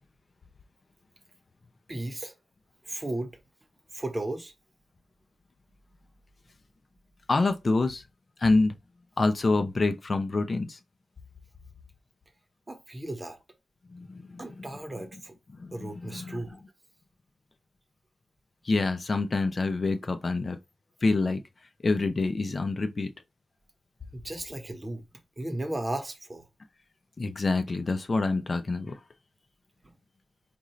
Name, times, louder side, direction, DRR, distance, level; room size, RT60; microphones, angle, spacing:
voice 1, 1.9-2.3 2.9-3.3 3.9-4.5 12.7-13.4 14.4-15.3 15.7-16.6 24.1-25.0 25.4-26.4, right 1 dB, 25° right, 1.0 m, -35 dB
voice 2, 7.3-8.0 8.4-8.7 9.2-10.8 13.9-14.4 15.6-16.4 18.7-20.6 21.0-21.4 21.8-23.1 27.2-29.0, left 3 dB, 45° left, 0.6 m, -26 dB
5.3 x 2.5 x 3.1 m
cardioid pair, 75°, 0 cm